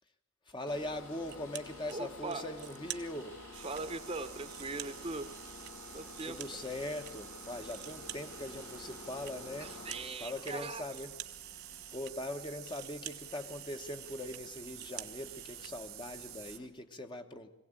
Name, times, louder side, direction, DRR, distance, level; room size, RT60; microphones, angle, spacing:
voice 1, 0.5-3.4 6.2-9.7 10.2-11.1 11.9-17.5, left 1 dB, 20° left, 6 dB, 1.0 m, -41 dB
sound 1, 0.7-16.7, left 3 dB, 90° left, 2.7 m, -52 dB
sound 2, 1.2-2.0 2.3-3.8 4.2-7.1 7.4-15.7, right 13 dB, 55° right, 0.9 m, -50 dB
voice 2, 1.9-2.5 3.6-5.3 5.9-6.4 9.6-10.8, right 3 dB, 30° right, 10 dB, 1.0 m, -40 dB
sound 3, 3.5-16.6, right 12 dB, 85° right, 1.9 m, -50 dB
21.5 x 16.5 x 8.9 m, 0.97 s
head